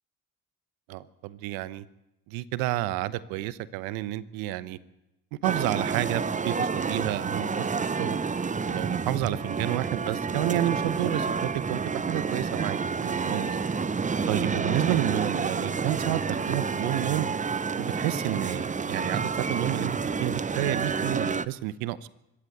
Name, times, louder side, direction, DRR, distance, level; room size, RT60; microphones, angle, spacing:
voice 1, 0.9-1.8 2.3-4.8 5.4-8.2 8.6-13.6 14.3-17.3 17.8-22.1, right 15 dB, 85° right, 16 dB, 1.0 m, -30 dB
sound 1, 5.4-21.5, right 5 dB, 20° right, 0.8 m, -29 dB
25.5 x 13.5 x 8.0 m, 0.90 s
supercardioid pair, 70°, 34 cm